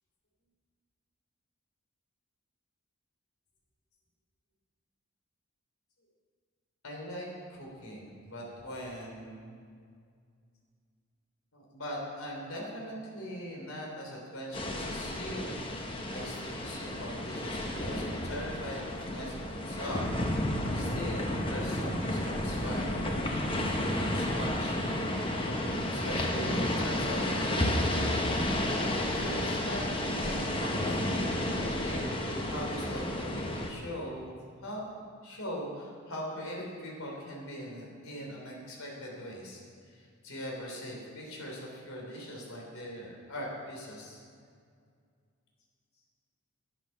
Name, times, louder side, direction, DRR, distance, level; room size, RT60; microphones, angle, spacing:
voice 1, 6.8-9.6 11.5-15.5 16.1-20.0 20.7-25.0 25.9-27.7 28.9-31.2 31.6-34.8 35.2-39.6 39.9-44.2, equal, 75° left, -2 dB, 3.3 m, -41 dB
sound 1, 14.5-33.7, left 1 dB, 25° left, 1.0 m, -31 dB
12.0 x 11.0 x 5.7 m, 2.2 s
head